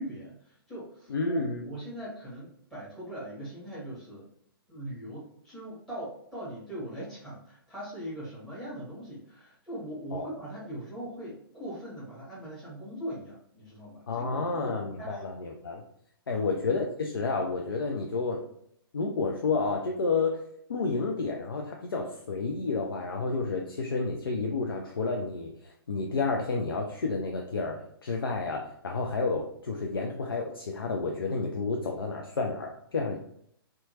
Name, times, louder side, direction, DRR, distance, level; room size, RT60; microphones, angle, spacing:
voice 1, 0.0-4.3 4.7-15.4 16.3-16.4, right 1 dB, ahead, -10 dB, 1.1 m, -40 dB
voice 2, 1.1-1.6 10.1-10.3 14.1-15.8 16.3-18.4 18.9-20.4 20.7-33.2, left 4 dB, 70° left, 1 dB, 0.4 m, -30 dB
2.8 x 2.2 x 2.8 m, 0.69 s
figure-of-eight pair, 120°, 13 cm